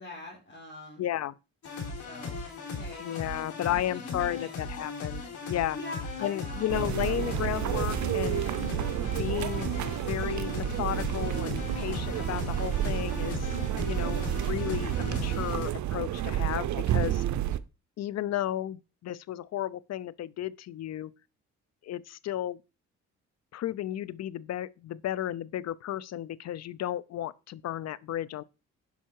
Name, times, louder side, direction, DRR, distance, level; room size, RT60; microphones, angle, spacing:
voice 1, 0.0-1.0 2.0-2.4 2.7-3.0 3.7-4.7 5.7-6.7, left 2 dB, 40° left, 3.4 m, -43 dB
voice 2, 1.0-1.3 3.0-5.8 6.2-8.4 9.2-9.7 10.0-13.5 13.8-17.2 18.0-21.1 21.8-22.6 23.5-28.4, left 12 dB, 60° left, 0.6 m, -33 dB
sound 1, 1.6-15.7, left 4 dB, 75° left, 3.7 m, -38 dB
sound 2, 6.7-17.6, right 12 dB, 70° right, 0.7 m, -30 dB
10.5 x 5.6 x 4.7 m
cardioid pair, 90°, 30 cm